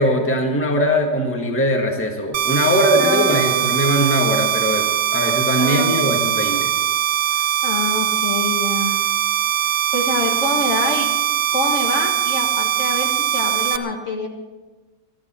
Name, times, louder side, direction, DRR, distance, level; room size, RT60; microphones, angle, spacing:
voice 1, 0.0-6.7, equal, 10° left, 2 dB, 1.4 m, -20 dB
sound 1, 2.3-13.8, right 9 dB, 65° right, 1.3 m, -21 dB
voice 2, 2.7-3.8 5.6-6.2 7.3-9.0 9.9-11.1 11.5-14.3, left 2 dB, 45° left, 1 dB, 1.8 m, -26 dB
21.5 x 12.5 x 4.3 m, 1.2 s
omnidirectional pair, 1.9 m